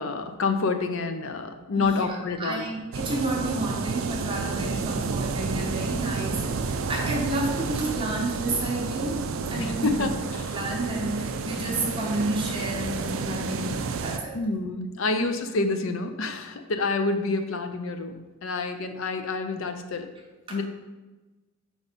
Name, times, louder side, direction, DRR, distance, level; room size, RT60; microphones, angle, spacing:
voice 1, 0.0-2.7 9.6-10.1 14.3-20.1 20.5-20.6, left 3 dB, 70° left, 8 dB, 0.6 m, -28 dB
voice 2, 1.7-9.2 9.5-10.1 10.5-14.4 15.2-15.3 20.5-20.6, right 1 dB, 25° right, -3 dB, 1.1 m, -30 dB
sound 1, 2.9-14.2, right 4 dB, 70° right, 0.4 m, -30 dB
4.6 x 4.2 x 5.1 m, 1.2 s
head